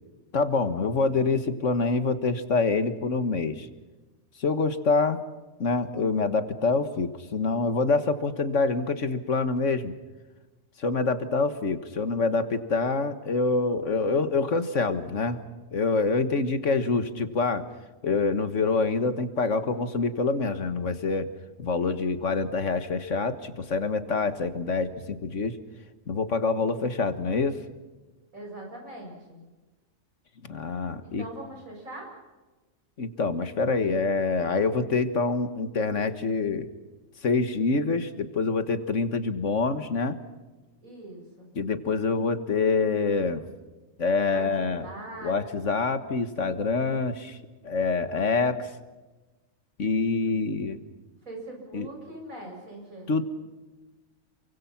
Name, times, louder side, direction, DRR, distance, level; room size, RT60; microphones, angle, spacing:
voice 1, 0.3-3.7 4.4-5.2 5.6-9.9 10.8-15.4 15.7-17.6 18.0-21.3 21.6-25.6 26.1-27.6 30.4-31.2 33.0-36.7 37.2-40.2 41.5-43.5 44.0-44.9 45.2-47.4 47.6-48.7 49.8-50.8 51.7-51.9 53.1-53.2, left 4 dB, 65° left, 10 dB, 1.8 m, -26 dB
voice 2, 28.3-29.4 31.0-32.1 40.8-41.5 44.3-45.8 51.2-53.1, right 1 dB, 80° right, 1 dB, 7.8 m, -42 dB
28.5 x 24.5 x 5.9 m, 1.2 s
omnidirectional pair, 1.4 m